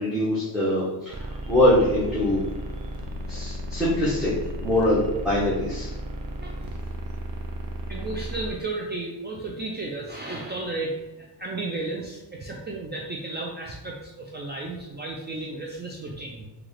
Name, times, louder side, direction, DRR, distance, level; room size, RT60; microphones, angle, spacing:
voice 1, 0.0-2.4 3.3-4.3 4.6-6.0, left 1 dB, ahead, -10 dB, 0.9 m, -23 dB
sound 1, 1.1-8.5, equal, 50° right, 0.7 m, -34 dB
voice 2, 7.9-16.5, right 2 dB, 25° right, -1 dB, 0.4 m, -33 dB
3.7 x 2.4 x 3.2 m, 1.0 s
cardioid pair, 110°, 43 cm